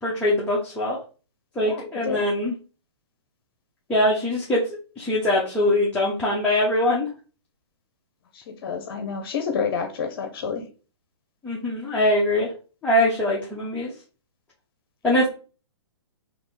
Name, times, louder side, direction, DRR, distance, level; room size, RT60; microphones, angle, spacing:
voice 1, 0.0-1.0 1.5-2.5 3.9-7.1 11.4-12.5 12.8-13.9 15.0-15.3, left 1 dB, 10° left, -6 dB, 1.0 m, -22 dB
voice 2, 1.6-2.2 8.3-10.7, left 6 dB, 55° left, 5 dB, 0.8 m, -29 dB
3.4 x 2.8 x 4.0 m, 0.36 s
hypercardioid pair, 130°, 15 cm